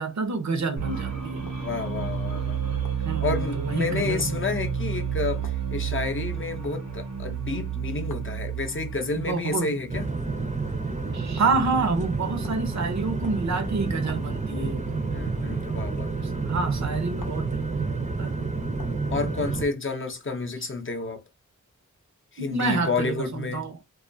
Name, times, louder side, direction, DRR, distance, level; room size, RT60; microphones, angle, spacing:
voice 1, 0.0-1.5 3.0-4.4 9.2-9.7 11.1-14.9 16.2-18.6 22.4-23.8, right 4 dB, 60° right, 0.6 m, -28 dB
sound 1, 0.8-10.4, right 7 dB, 85° right, 1.0 m, -31 dB
sound 2, 1.5-1.7 2.8-3.1 4.2-4.4 5.4-5.6 6.6-6.9 8.1-8.3 9.6-9.8 11.3-11.7 12.4-12.7 13.2-13.6 14.1-14.3 15.8-15.9 17.2-17.5 18.8-19.0, left 4 dB, 85° left, 0.6 m, -44 dB
voice 2, 1.5-2.6 3.2-10.1 15.1-16.1 19.1-21.2 22.3-23.7, left 4 dB, 40° left, 0.5 m, -30 dB
sound 3, 9.9-19.7, right 3 dB, 25° right, 0.5 m, -29 dB
2.4 x 2.3 x 2.5 m
wide cardioid pair, 90°, 31 cm